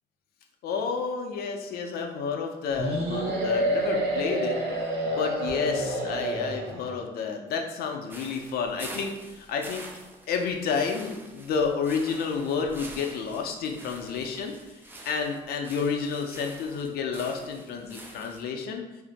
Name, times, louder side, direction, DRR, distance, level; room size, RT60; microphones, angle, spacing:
voice 1, 0.6-4.6 5.1-9.9 10.3-18.8, left 5 dB, 65° left, 3 dB, 0.5 m, -30 dB
sound 1, 2.8-7.0, right 1 dB, 70° right, 0.7 m, -28 dB
sound 2, 8.1-18.4, right 1 dB, 10° right, 0.4 m, -46 dB
2.5 x 2.0 x 3.9 m, 1.0 s
cardioid pair, 110°, 17 cm